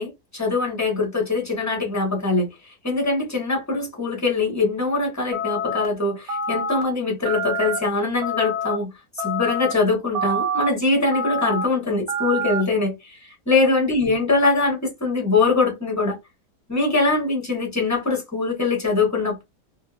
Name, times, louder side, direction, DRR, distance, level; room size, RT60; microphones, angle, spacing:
voice 1, 0.0-2.5 2.8-8.9 9.2-13.1 13.5-16.1 16.7-19.4, left 3 dB, 15° left, 0.8 m, -22 dB
sound 1, 5.3-5.9 6.3-6.8 7.3-7.8 8.2-8.8 9.2-9.7 10.2-10.7 11.1-11.7 12.1-12.6, equal, 65° right, 1.1 m, -26 dB
2.8 x 2.5 x 2.4 m
omnidirectional pair, 1.8 m